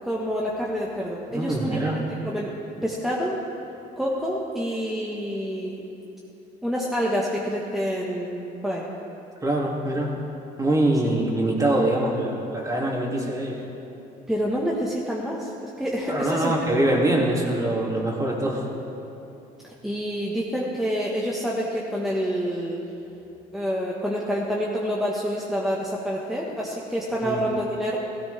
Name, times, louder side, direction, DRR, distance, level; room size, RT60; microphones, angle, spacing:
voice 1, 0.0-2.6 2.8-3.4 4.0-5.8 6.6-8.9 14.3-16.8 19.6-22.8 23.5-28.0, equal, ahead, -4 dB, 1.4 m, -27 dB
voice 2, 1.3-2.0 9.4-10.1 10.6-13.6 16.1-18.6 27.2-27.4, right 1 dB, 20° right, -2 dB, 2.6 m, -24 dB
16.5 x 16.0 x 3.4 m, 3.0 s
cardioid pair, 110°, 17 cm